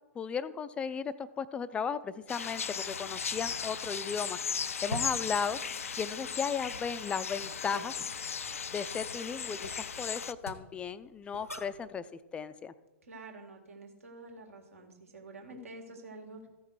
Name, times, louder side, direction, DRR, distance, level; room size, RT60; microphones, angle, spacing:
voice 1, 0.1-5.6 6.0-8.0 8.7-12.7, left 6 dB, 15° left, 14 dB, 0.4 m, -36 dB
sound 1, 2.3-10.3, left 6 dB, 70° left, 0.4 m, -37 dB
sound 2, 2.8-11.9, equal, 90° left, 1.0 m, -47 dB
voice 2, 13.0-16.5, right 2 dB, 70° right, 2 dB, 2.0 m, -48 dB
14.5 x 5.8 x 4.8 m, 1.1 s
figure-of-eight pair, 105°, 8 cm